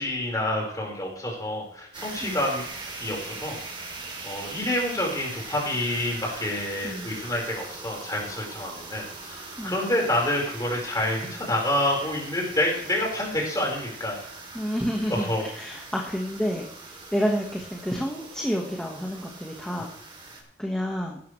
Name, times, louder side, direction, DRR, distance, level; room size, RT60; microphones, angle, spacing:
voice 1, 0.0-2.6 3.0-3.9 4.2-14.2 15.1-15.7, left 1 dB, 20° left, -1 dB, 4.9 m, -28 dB
sound 1, 1.9-20.4, right 3 dB, 30° right, 3.2 m, -41 dB
voice 2, 14.5-15.3 15.6-16.7 17.1-19.9 20.6-21.2, equal, 5° left, -2 dB, 1.5 m, -29 dB
16.5 x 12.0 x 3.3 m, 0.64 s
head